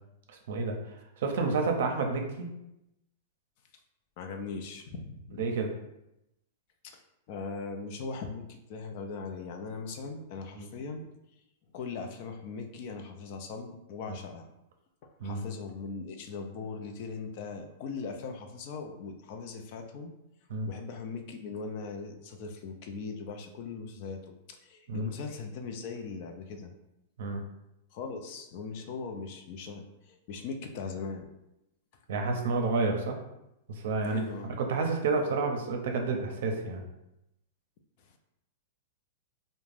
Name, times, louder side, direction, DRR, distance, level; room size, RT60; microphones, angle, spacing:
voice 1, 0.3-2.5 5.4-5.7 10.5-10.7 15.2-15.4 20.5-20.7 24.9-25.1 27.2-27.4 32.1-33.2 33.7-36.8, right 3 dB, 70° right, 3 dB, 0.5 m, -30 dB
voice 2, 4.2-5.4 6.8-11.1 11.7-14.5 15.2-20.1 20.7-24.2 24.6-26.7 27.9-31.3 34.0-34.6 38.0-38.2, left 4 dB, 55° left, 5 dB, 0.4 m, -40 dB
2.4 x 2.1 x 3.2 m, 0.88 s
hypercardioid pair, 130°, 0 cm